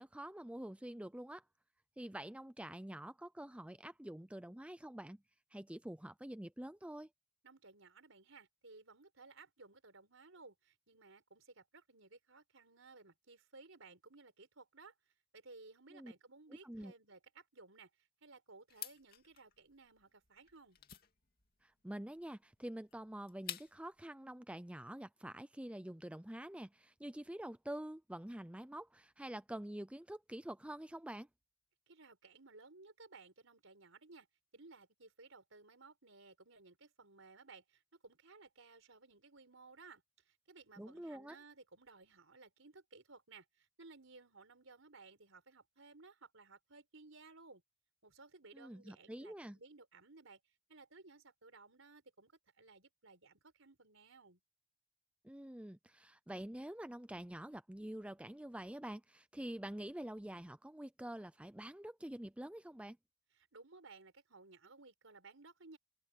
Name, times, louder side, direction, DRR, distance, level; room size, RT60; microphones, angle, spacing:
voice 1, 0.0-1.4 2.0-5.2 5.5-7.1 15.9-16.1 16.6-16.9 21.6-31.3 40.8-41.4 48.5-49.6 55.2-63.0, right 1 dB, 5° right, 0.5 m, -47 dB
voice 2, 7.4-14.9 15.3-20.8 31.9-34.3 34.5-47.6 48.0-50.4 50.7-54.4 63.3-65.8, right 3 dB, 70° right, 4.7 m, -59 dB
sound 1, 18.7-24.0, left 10 dB, 45° left, 2.4 m, -51 dB
open air
head